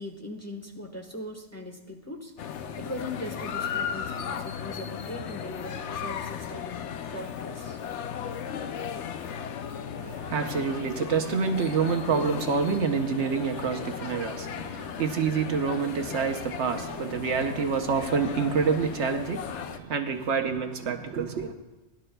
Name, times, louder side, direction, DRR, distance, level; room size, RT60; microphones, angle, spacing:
voice 1, 0.0-7.8, left 1 dB, 15° left, 1.1 m, -40 dB
sound 1, 2.4-19.8, left 8 dB, 75° left, 0.9 m, -36 dB
voice 2, 9.9-21.5, right 5 dB, 75° right, 1.1 m, -27 dB
20.5 x 11.5 x 2.2 m
omnidirectional pair, 1.2 m